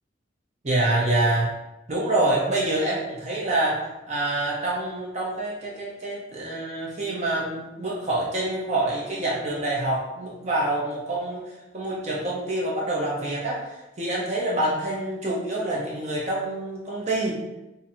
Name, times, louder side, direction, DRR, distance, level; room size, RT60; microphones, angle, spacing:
voice 1, 0.6-1.5 1.9-17.4, right 2 dB, 35° right, -4 dB, 0.7 m, -26 dB
2.7 x 2.6 x 4.2 m, 0.97 s
head